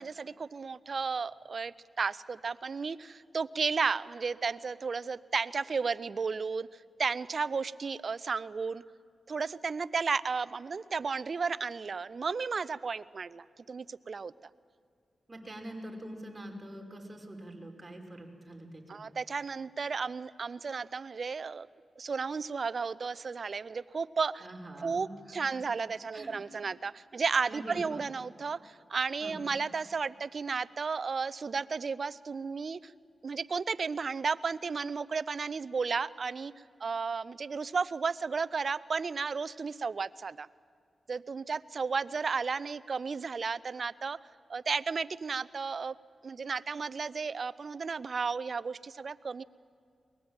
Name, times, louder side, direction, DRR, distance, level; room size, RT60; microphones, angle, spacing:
voice 1, 0.0-6.7 7.0-8.8 9.3-14.3 18.9-21.7 22.0-24.4 24.8-32.9 33.2-36.5 36.8-40.5 41.1-44.2 44.5-45.9 46.2-49.4, right 5 dB, 60° right, 17 dB, 0.6 m, -33 dB
voice 2, 15.3-19.0 24.4-25.6 26.1-26.4 27.5-28.1 29.2-29.4, right 1 dB, 25° right, 1 dB, 5.3 m, -45 dB
22.5 x 20.5 x 8.9 m, 2.2 s
supercardioid pair, 45°, 0 cm